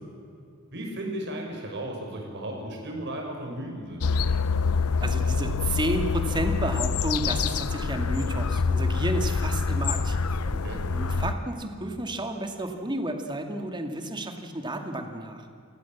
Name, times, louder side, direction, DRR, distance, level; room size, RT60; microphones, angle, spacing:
voice 1, 0.7-4.1 10.4-10.8, right 1 dB, 55° right, 1 dB, 5.6 m, -35 dB
sound 1, 4.0-11.3, left 5 dB, 85° left, 0.6 m, -26 dB
voice 2, 5.0-10.3 10.9-15.4, right 1 dB, 20° right, 5 dB, 2.3 m, -31 dB
29.5 x 16.5 x 7.4 m, 2.5 s
head